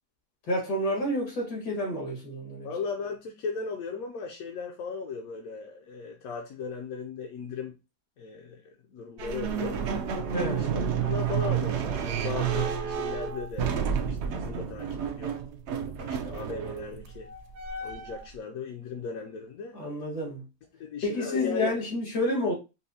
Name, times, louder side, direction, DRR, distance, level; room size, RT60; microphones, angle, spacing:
voice 1, 0.5-2.7 10.3-10.8 19.7-20.4 21.0-22.5, left 1 dB, 85° left, 2.1 m, -29 dB
voice 2, 2.6-7.8 8.2-8.6 8.9-9.8 10.5-15.4 15.9-17.3 17.8-19.8 20.8-21.8, left 5 dB, 70° left, 1.0 m, -37 dB
sound 1, 9.2-18.3, right 7 dB, 65° right, 0.7 m, -30 dB
5.3 x 2.1 x 2.7 m
omnidirectional pair, 1.7 m